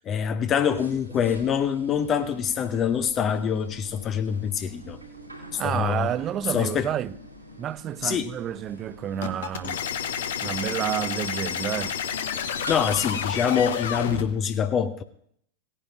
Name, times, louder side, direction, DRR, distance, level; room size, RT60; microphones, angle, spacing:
voice 1, 0.0-5.0 5.5-6.1 6.5-6.9 8.0-8.3 12.7-15.0, left 8 dB, 30° left, 0.7 m, -25 dB
sound 1, 0.6-14.5, equal, 90° right, 3.6 m, -44 dB
voice 2, 5.6-7.1 7.6-9.8 10.4-12.0, right 10 dB, 30° right, 0.3 m, -30 dB
sound 2, 9.2-14.2, left 8 dB, 60° left, 0.9 m, -30 dB
17.5 x 9.8 x 3.0 m
figure-of-eight pair, 90°, 0 cm